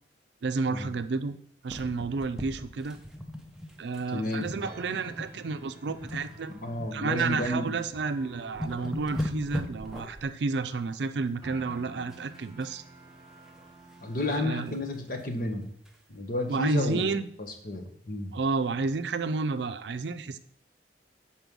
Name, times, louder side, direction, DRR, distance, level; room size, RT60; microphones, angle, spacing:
voice 1, 0.4-1.4 1.6-3.0 3.8-6.5 6.9-12.8 14.3-14.8 16.5-17.3 18.3-20.4, right 4 dB, 75° right, 11 dB, 0.4 m, -31 dB
sound 1, 1.6-4.1 4.3-4.5 5.0-5.4 5.7-7.6 8.0-8.1 8.4-10.3 12.1-12.7 13.0-14.5 14.9-15.0 15.3-15.4 15.8-15.9, left 1 dB, 5° right, 0.7 m, -39 dB
voice 2, 4.1-4.5 6.4-7.8 14.0-15.8 16.1-17.1 17.4-18.3, left 1 dB, 50° left, 4 dB, 1.1 m, -32 dB
sound 2, 4.6-14.7, right 2 dB, 25° right, 1.9 m, -51 dB
5.3 x 4.3 x 6.1 m, 0.66 s
head